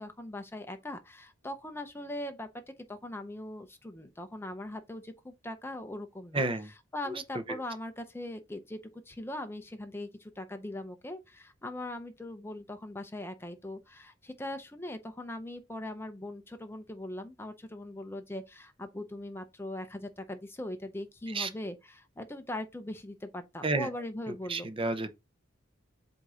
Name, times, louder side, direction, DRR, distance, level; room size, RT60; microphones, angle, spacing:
voice 1, 0.0-2.5 2.9-8.8 9.1-24.7, left 1 dB, 10° left, 0.5 m, -40 dB
voice 2, 6.3-6.7 7.1-7.2 7.5-7.6 21.3-21.5 23.6-23.9 24.5-25.2, right 2 dB, 30° right, 0.7 m, -31 dB
8.0 x 2.7 x 4.9 m
head